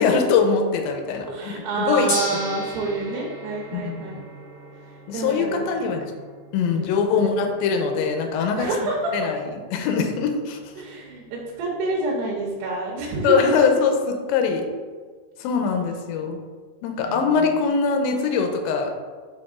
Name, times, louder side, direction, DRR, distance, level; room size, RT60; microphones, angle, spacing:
voice 1, 0.0-2.1 3.7-4.2 5.1-6.0 6.5-8.7 9.1-9.4 9.7-10.6 13.2-14.7 15.4-16.4 16.8-18.9, left 5 dB, 80° left, 4 dB, 2.3 m, -22 dB
voice 2, 1.3-4.2 5.1-5.9 6.7-7.3 8.6-9.1 10.8-13.7 14.8-14.9 17.0-17.4, right 3 dB, 90° right, -3 dB, 3.1 m, -28 dB
Gong, 2.1-12.3, left 1 dB, 40° left, 1.9 m, -38 dB
6.0 x 5.1 x 3.6 m, 1.5 s
omnidirectional pair, 4.6 m